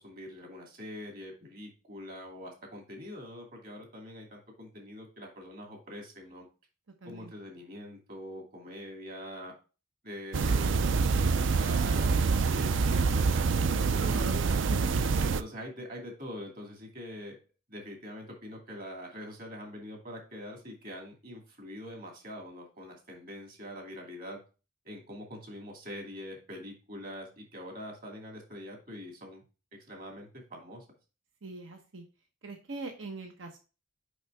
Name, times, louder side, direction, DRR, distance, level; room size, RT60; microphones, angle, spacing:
voice 1, 0.0-6.4 7.0-9.5 10.0-11.3 11.6-12.1 12.5-14.5 15.2-17.4 17.7-24.4 24.8-29.4 29.9-30.8, equal, 50° right, 1 dB, 2.5 m, -44 dB
voice 2, 7.0-7.3 14.0-14.4 14.7-14.9 31.4-32.0 32.4-33.6, right 3 dB, 90° right, 4 dB, 1.0 m, -41 dB
sound 1, 10.3-15.4, right 4 dB, 70° right, 0.4 m, -26 dB
6.3 x 5.5 x 3.3 m, 0.32 s
head